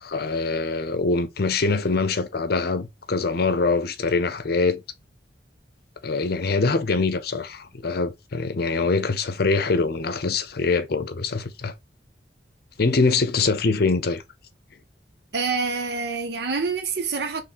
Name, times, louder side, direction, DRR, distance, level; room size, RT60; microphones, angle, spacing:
voice 1, 0.0-4.8 6.0-11.7 12.8-14.2, left 3 dB, 60° left, 0.6 m, -24 dB
voice 2, 15.3-17.4, right 4 dB, 65° right, 0.8 m, -26 dB
3.7 x 3.2 x 4.3 m
head